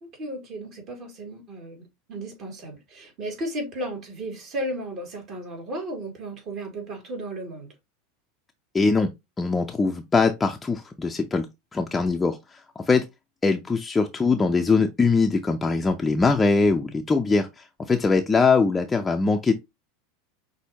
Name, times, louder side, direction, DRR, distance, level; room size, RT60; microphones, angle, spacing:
voice 1, 0.0-7.7, right 1 dB, 45° right, 2.4 m, -34 dB
voice 2, 8.7-9.1 9.4-11.5 11.7-13.1 13.4-19.5, left 4 dB, 15° left, 0.5 m, -22 dB
6.0 x 2.7 x 2.8 m
hypercardioid pair, 105°, 0 cm